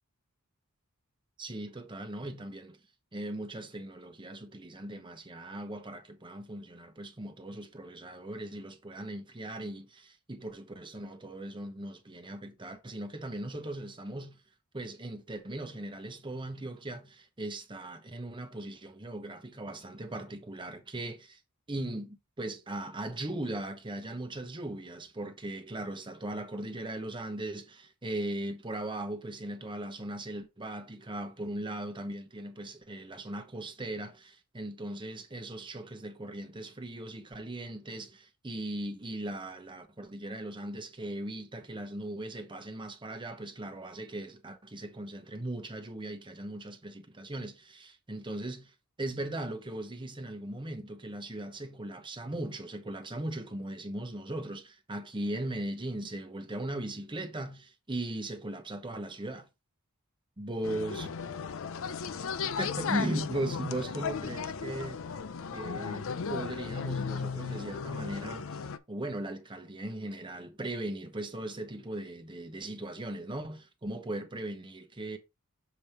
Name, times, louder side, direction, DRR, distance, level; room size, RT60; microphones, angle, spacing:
voice 1, 1.4-2.8 3.1-14.4 14.7-21.4 21.7-59.5 60.4-61.1 62.6-65.0 65.5-68.6 68.9-75.2, right 1 dB, 20° right, 1.0 m, -38 dB
sound 1, 60.6-68.8, left 5 dB, 65° left, 0.6 m, -35 dB
7.1 x 3.5 x 4.4 m
head